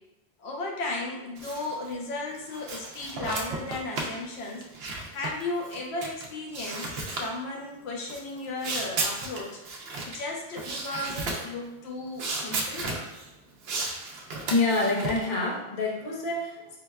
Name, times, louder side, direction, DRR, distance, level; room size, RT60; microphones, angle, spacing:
voice 1, 0.4-9.6 10.1-12.9, left 2 dB, 85° left, 0 dB, 0.8 m, -35 dB
sound 1, 1.4-1.9 2.3-6.3 6.5-7.3 8.1-10.2 10.6-11.5 12.2-13.3 13.6-15.3, right 3 dB, 75° right, 0.8 m, -34 dB
voice 2, 14.5-16.8, left 2 dB, 55° left, -2 dB, 0.8 m, -27 dB
4.7 x 2.1 x 2.3 m, 0.97 s
omnidirectional pair, 1.0 m